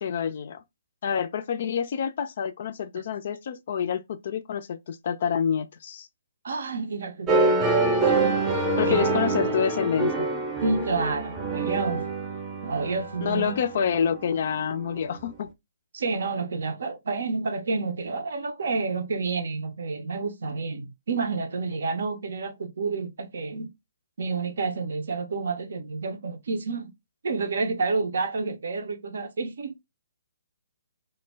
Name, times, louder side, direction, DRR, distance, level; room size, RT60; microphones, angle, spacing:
voice 1, 0.0-0.6 1.0-6.1 8.8-10.3 13.2-15.5, left 7 dB, 50° left, 0.3 m, -27 dB
voice 2, 6.4-7.5 8.9-9.0 10.6-12.1 12.6-13.6 15.9-23.7 24.2-26.9 27.2-29.8, right 4 dB, 65° right, 0.5 m, -29 dB
sound 1, 7.3-15.1, right 3 dB, 15° right, 0.6 m, -26 dB
2.1 x 2.0 x 3.2 m
figure-of-eight pair, 135°, 0 cm